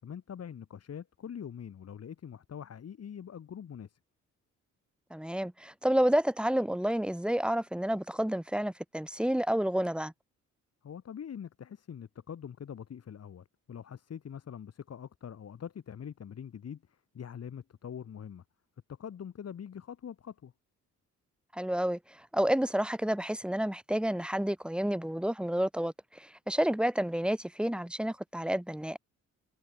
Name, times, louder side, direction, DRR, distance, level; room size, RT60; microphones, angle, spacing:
voice 1, 0.0-4.0 10.8-16.8 17.1-18.4 18.9-20.5, left 8 dB, 55° left, 7.4 m, -43 dB
voice 2, 5.1-10.1 21.5-29.0, equal, 5° right, 3.2 m, -30 dB
cardioid pair, 90°, 30 cm